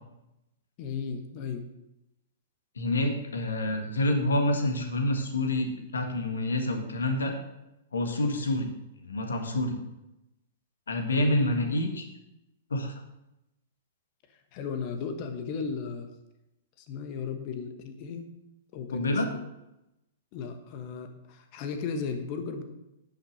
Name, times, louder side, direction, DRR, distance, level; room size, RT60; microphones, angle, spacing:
voice 1, 0.8-1.6 11.3-11.4 14.5-16.1 16.8-18.3 18.7-19.4 20.3-22.6, left 5 dB, 40° left, 7 dB, 1.4 m, -35 dB
voice 2, 2.8-5.7 5.9-7.4 7.9-8.7 9.0-9.8 10.9-12.0 12.7-13.0 18.9-19.3, left 1 dB, 70° left, 5 dB, 1.7 m, -27 dB
10.0 x 6.2 x 6.4 m, 0.90 s
figure-of-eight pair, 105°, 0 cm